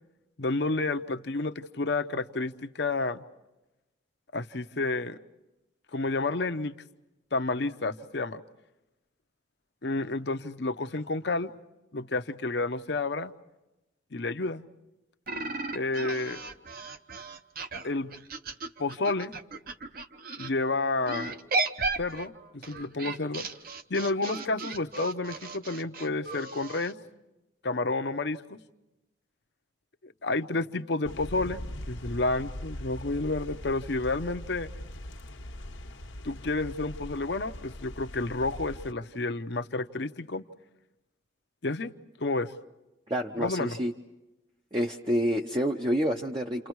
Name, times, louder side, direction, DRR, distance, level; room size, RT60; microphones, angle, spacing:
voice 1, 0.4-3.2 4.3-5.2 5.9-6.7 7.3-8.4 9.8-11.5 11.9-13.3 14.1-14.7 15.7-16.4 17.8-18.2 18.8-19.3 20.4-21.3 22.0-23.5 23.9-27.0 27.6-28.6 30.0-31.6 31.9-34.7 36.2-40.4 41.6-41.9 42.2-42.5 43.4-43.8, left 3 dB, 60° left, 10 dB, 0.8 m, -30 dB
sound 1, 15.3-20.5 21.1-26.9, right 3 dB, 50° right, 1.0 m, -35 dB
sound 2, 31.0-38.9, left 1 dB, 80° left, 1.4 m, -41 dB
voice 2, 43.1-43.9 44.7-46.7, equal, 25° right, 2 dB, 0.8 m, -28 dB
29.5 x 28.0 x 4.7 m, 0.98 s
head